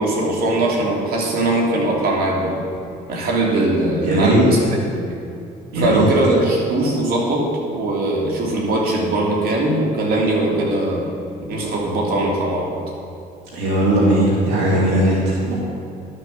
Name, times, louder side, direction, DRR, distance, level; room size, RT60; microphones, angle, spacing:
voice 1, 0.0-2.6 3.1-4.6 4.9-5.0 5.7-11.1 11.5-12.8, right 2 dB, 65° right, -2 dB, 3.1 m, -20 dB
voice 2, 4.0-4.4 5.7-6.1 13.5-15.6, right 1 dB, 85° right, -4 dB, 2.3 m, -18 dB
11.5 x 7.7 x 7.3 m, 2.6 s
cardioid pair, 110°, 17 cm